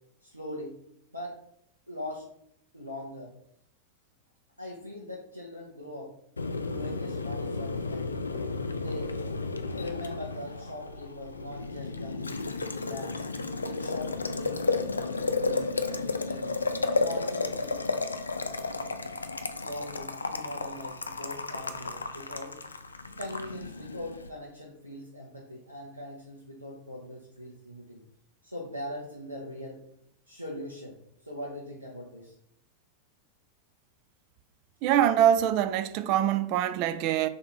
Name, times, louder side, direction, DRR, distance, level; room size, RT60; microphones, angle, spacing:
voice 1, 0.2-0.8 1.1-1.3 1.9-2.3 2.7-3.3 4.6-6.1 6.6-8.3 8.7-9.1 9.7-12.2 12.7-13.2 13.5-15.7 15.9-16.5 16.9-17.8 19.6-22.5 23.2-28.0 28.4-29.8 30.3-30.9 31.2-32.3, left 1 dB, 85° right, 0.7 m, -41 dB
Boiling, 6.4-24.3, left 3 dB, 75° left, 0.3 m, -33 dB
voice 2, 34.8-37.3, right 10 dB, 45° right, 0.3 m, -24 dB
3.8 x 2.8 x 4.3 m
figure-of-eight pair, 90°, 0 cm